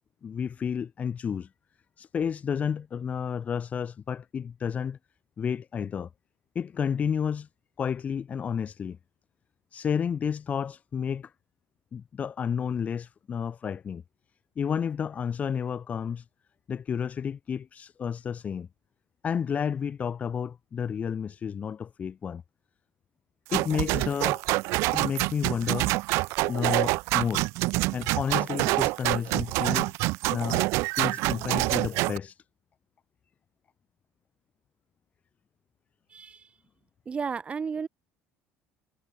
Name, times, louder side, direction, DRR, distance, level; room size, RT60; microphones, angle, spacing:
voice 1, 0.2-1.5 2.0-5.0 5.4-6.1 6.5-7.5 7.8-9.0 9.7-11.3 11.9-14.0 14.6-16.3 16.7-18.7 19.2-22.4 23.5-24.4 24.9-25.9 26.5-27.5 27.9-29.9 30.3-30.7 31.0-32.4, left 7 dB, 30° left, 2.4 m, -31 dB
sound 1, 23.5-32.2, right 23 dB, 70° right, 0.7 m, -26 dB
voice 2, 36.1-36.5 37.1-37.9, right 6 dB, 25° right, 5.6 m, -33 dB
cardioid pair, 135°, 5 cm